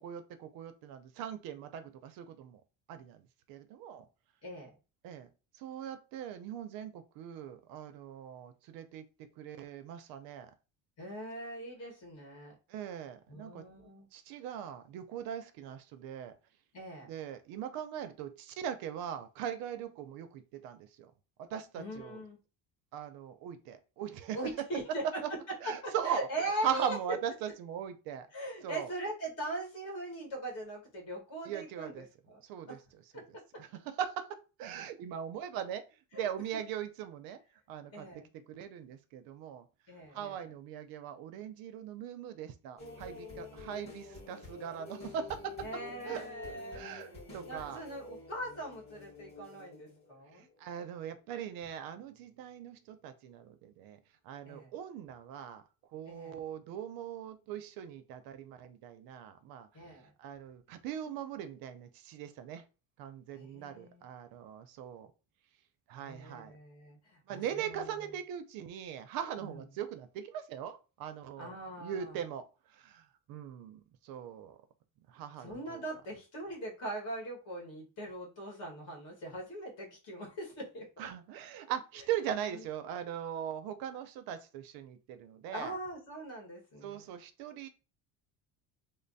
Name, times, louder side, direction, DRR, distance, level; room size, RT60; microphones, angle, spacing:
voice 1, 0.0-2.6 2.9-4.1 5.0-5.3 5.5-10.5 12.7-13.6 14.1-16.4 17.1-21.1 21.4-22.2 22.9-24.4 25.6-28.3 28.6-28.9 31.4-32.1 32.4-32.8 33.1-33.2 33.6-35.8 36.1-37.4 37.7-38.1 38.5-39.7 40.1-45.7 46.1-47.8 50.3-55.6 55.9-59.7 60.2-62.6 63.0-65.1 65.9-66.5 67.3-74.6 75.1-75.8 81.0-85.7 86.8-87.7, right 9 dB, 65° right, 0.6 m, -40 dB
voice 2, 11.0-12.6 13.3-14.1 16.7-17.1 21.8-22.4 24.3-25.2 25.6-27.0 28.3-32.4 32.7-32.8 33.1-33.3 36.1-36.3 37.9-38.3 39.9-40.4 45.6-46.8 47.4-50.5 54.4-54.7 56.0-56.4 59.7-60.1 63.3-64.0 66.0-68.0 69.4-69.6 71.4-72.2 75.4-81.1 82.5-82.6 85.5-87.1, right 1 dB, 40° left, 1.6 m, -41 dB
sound 1, 42.8-50.7 51.2-51.3, left 3 dB, 15° left, 1.4 m, -49 dB
3.2 x 2.0 x 3.9 m
cardioid pair, 175°, 37 cm